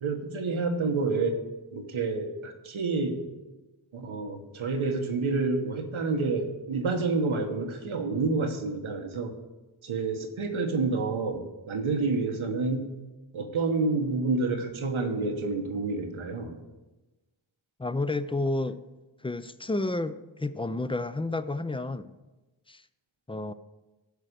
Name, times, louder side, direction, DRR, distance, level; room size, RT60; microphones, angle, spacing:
voice 1, 0.0-1.4 1.7-3.2 3.9-9.3 9.8-12.9 13.3-16.6, right 3 dB, 90° right, 4 dB, 1.2 m, -29 dB
voice 2, 17.8-18.8 19.2-22.1 22.7-22.8 23.3-23.5, left 2 dB, 10° left, 14 dB, 0.4 m, -30 dB
12.0 x 4.9 x 6.7 m, 1.1 s
cardioid pair, 45°, 47 cm